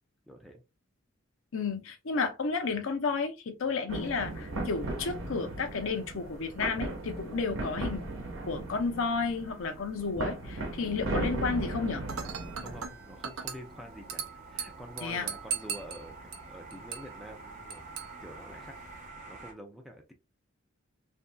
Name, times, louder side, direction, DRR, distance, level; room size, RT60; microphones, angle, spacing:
voice 1, 0.3-0.6 12.6-17.8 18.2-18.8 19.3-20.1, equal, ahead, 0.5 m, -47 dB
voice 2, 1.5-8.1 8.4-12.0 15.0-15.3, left 4 dB, 70° left, 0.6 m, -32 dB
sound 1, 3.9-12.9, right 2 dB, 75° right, 0.9 m, -37 dB
sound 2, 10.4-19.5, right 3 dB, 40° right, 0.7 m, -49 dB
Dishes pots and pans / Glass, 12.1-19.1, right 6 dB, 90° right, 0.5 m, -41 dB
2.8 x 2.7 x 2.2 m
head